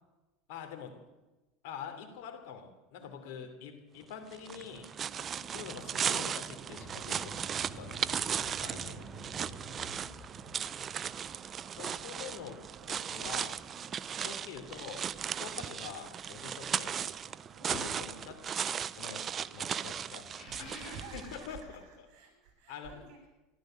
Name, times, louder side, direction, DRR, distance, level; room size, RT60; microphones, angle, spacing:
voice 1, 0.5-1.0 1.6-4.9 5.5-9.7 11.7-13.6 14.2-17.1 17.8-18.4 19.0-20.3 20.6-22.1 22.7-22.9, left 7 dB, 70° left, 5 dB, 2.9 m, -46 dB
voice 2, 3.0-3.5 5.0-5.8 8.2-8.9 9.4-10.6 13.7-14.0 16.4-16.6 17.5-18.6 19.8-23.3, right 3 dB, 55° right, 4 dB, 7.2 m, -53 dB
sound 1, 4.3-21.5, right 8 dB, 30° right, 0.4 m, -37 dB
sound 2, 4.9-5.2 5.7-5.8 6.3-6.7 7.3-7.4 7.6-7.7 8.6-8.8 9.6-10.1 10.9-11.0 11.9-12.0 12.7-12.8 13.2-16.5 16.9-21.9, left 3 dB, 30° left, 3.8 m, -53 dB
sound 3, 6.8-14.8, right 1 dB, ahead, 2.6 m, -52 dB
14.0 x 12.0 x 7.6 m, 1.1 s
supercardioid pair, 130°, 0 cm